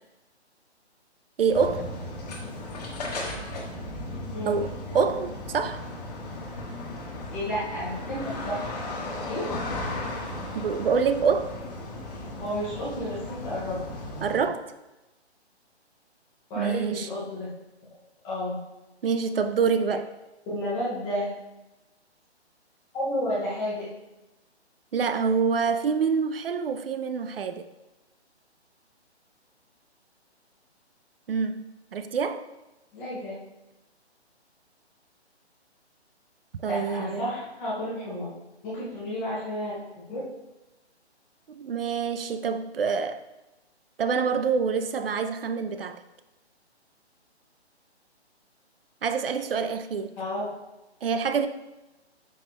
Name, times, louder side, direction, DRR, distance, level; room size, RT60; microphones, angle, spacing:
voice 1, 1.4-1.9 4.5-5.8 10.5-11.5 14.2-14.6 16.6-17.1 19.0-20.1 24.9-27.7 31.3-32.4 36.6-37.3 41.5-43.2 44.0-46.0 49.0-50.1 51.0-51.5, right 6 dB, 55° right, 0.6 m, -26 dB
sound 1, 1.5-14.4, left 2 dB, 35° left, 1.4 m, -36 dB
voice 2, 7.3-8.6 9.2-9.5 12.4-13.8 16.5-17.5 18.2-18.6 20.5-21.3 22.9-23.9 32.9-33.3 36.6-38.3 38.6-39.7 40.1-40.2 50.2-50.4, left 1 dB, 5° left, 0.5 m, -31 dB
8.9 x 6.4 x 2.2 m
hypercardioid pair, 155°, 34 cm